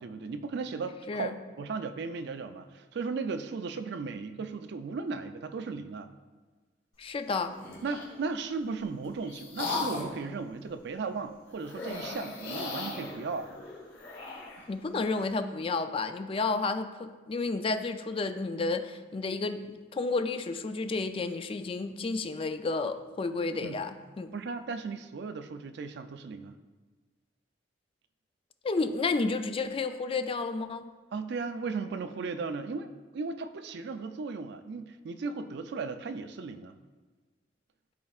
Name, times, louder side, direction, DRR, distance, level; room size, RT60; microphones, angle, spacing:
voice 1, 0.0-6.1 7.8-13.5 23.6-23.8 24.3-26.6 31.1-36.8, right 4 dB, 65° right, 10 dB, 0.4 m, -36 dB
voice 2, 7.0-7.6 14.7-24.3 28.6-30.8, left 3 dB, 30° left, 9 dB, 0.3 m, -31 dB
sound 1, 7.5-8.1 8.8-10.2 11.6-14.7, left 3 dB, 75° left, 1.8 m, -37 dB
12.0 x 4.2 x 2.4 m, 1.3 s
head